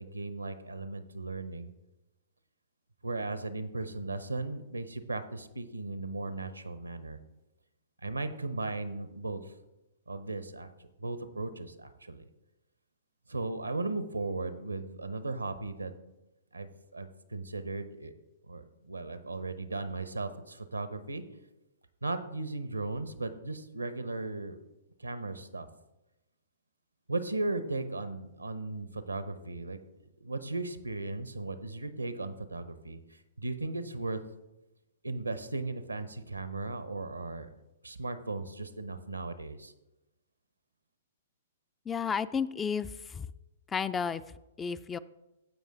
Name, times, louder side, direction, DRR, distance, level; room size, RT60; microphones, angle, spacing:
voice 1, 0.0-1.7 3.0-7.2 8.0-9.4 10.1-12.3 13.3-15.9 16.5-18.1 18.5-21.2 22.0-24.6 25.0-25.7 27.1-29.8 30.2-34.2 35.0-37.5 37.8-39.7, right 2 dB, 90° right, 11 dB, 0.8 m, -36 dB
voice 2, 41.9-42.9 43.1-43.3 43.7-44.2 44.6-45.0, left 6 dB, 15° left, 15 dB, 0.3 m, -31 dB
15.0 x 5.3 x 3.8 m, 0.99 s
figure-of-eight pair, 115°, 0 cm